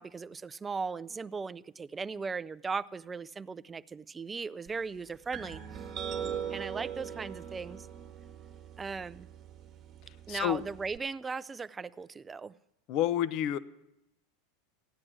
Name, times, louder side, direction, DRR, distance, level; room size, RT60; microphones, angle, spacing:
voice 1, 0.0-5.8 6.5-7.9 8.8-9.3 10.3-12.5, right 4 dB, 20° right, 0.4 m, -38 dB
sound 1, 5.3-11.0, right 8 dB, 35° right, 1.3 m, -41 dB
voice 2, 10.3-10.6 12.9-13.6, left 11 dB, 50° left, 0.6 m, -29 dB
14.5 x 9.7 x 6.2 m
hypercardioid pair, 90°, 0 cm